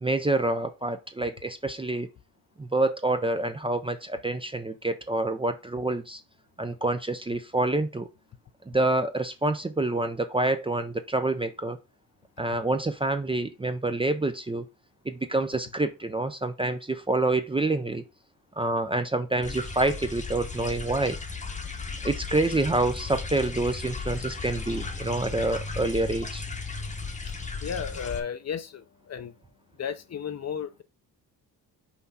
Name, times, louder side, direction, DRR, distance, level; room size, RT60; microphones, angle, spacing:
voice 1, 0.0-2.1 2.6-6.2 6.6-8.1 8.7-11.8 12.4-14.7 15.1-18.0 18.6-21.2 22.0-26.4, right 2 dB, 15° right, 0.5 m, -27 dB
sound 1, 19.4-28.2, left 4 dB, 20° left, 0.9 m, -35 dB
voice 2, 27.6-29.3 29.8-30.8, left 7 dB, 40° left, 0.7 m, -34 dB
5.8 x 4.6 x 4.1 m
cardioid pair, 130°, 38 cm